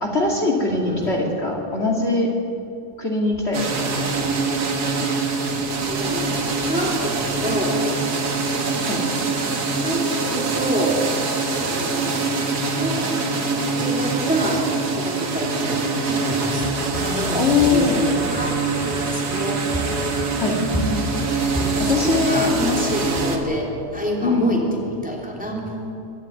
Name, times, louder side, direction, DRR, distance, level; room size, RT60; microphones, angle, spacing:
voice 1, 0.0-2.3 3.0-3.9 8.8-9.0 17.4-18.0 20.4-20.6 21.8-22.5 24.2-24.5, left 3 dB, 40° left, -2 dB, 2.7 m, -21 dB
voice 2, 0.7-1.2 4.2-4.3 5.5-6.3 6.6-7.9 9.1-9.2 9.7-11.1 11.5-12.2 12.7-13.1 13.6-20.3 20.6-21.2 21.5-25.8, equal, 5° right, -2 dB, 3.2 m, -27 dB
sound 1, 3.5-23.4, right 4 dB, 80° right, 2.3 m, -24 dB
24.0 x 12.5 x 9.3 m, 2.7 s
omnidirectional pair, 1.7 m